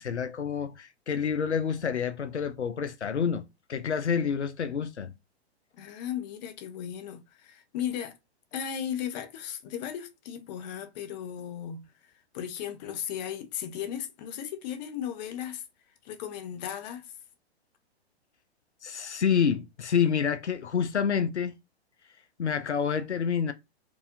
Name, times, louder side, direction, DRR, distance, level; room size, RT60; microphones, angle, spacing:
voice 1, 0.0-5.1 18.8-21.5 22.4-23.5, left 7 dB, 90° left, 0.6 m, -28 dB
voice 2, 5.7-8.2 8.5-15.6 16.0-17.1, left 9 dB, 40° left, 0.9 m, -36 dB
4.7 x 2.6 x 2.5 m
figure-of-eight pair, 115°, 33 cm